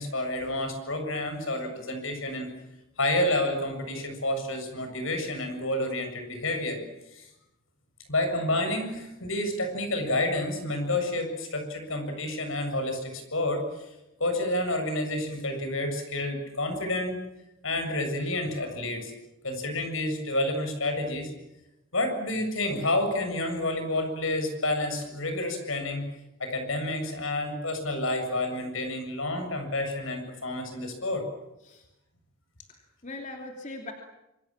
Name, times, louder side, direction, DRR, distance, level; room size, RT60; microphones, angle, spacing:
voice 1, 0.0-2.5 3.0-6.8 7.1-7.3 8.1-13.9 14.2-17.2 17.6-19.1 19.4-21.3 21.9-26.1 26.4-31.3, left 1 dB, 75° left, 6 dB, 7.4 m, -29 dB
voice 2, 32.7-33.9, left 2 dB, 35° left, 2 dB, 2.9 m, -41 dB
27.0 x 24.5 x 7.5 m, 0.91 s
head